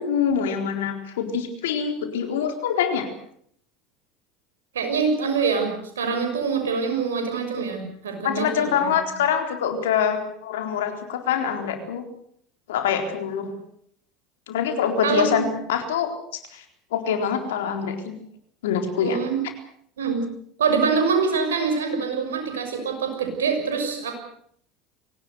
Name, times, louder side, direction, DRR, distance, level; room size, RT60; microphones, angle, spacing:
voice 1, 0.0-3.1 8.2-12.0 12.7-13.5 14.5-16.1 16.5-16.6 16.9-18.1 18.6-19.2, left 7 dB, 75° left, 6 dB, 4.1 m, -25 dB
voice 2, 4.7-8.9 15.0-15.4 19.0-19.4 20.0-20.2 20.6-24.1, right 5 dB, 80° right, 5 dB, 6.2 m, -24 dB
23.0 x 18.5 x 8.0 m, 0.66 s
hypercardioid pair, 75°, 0 cm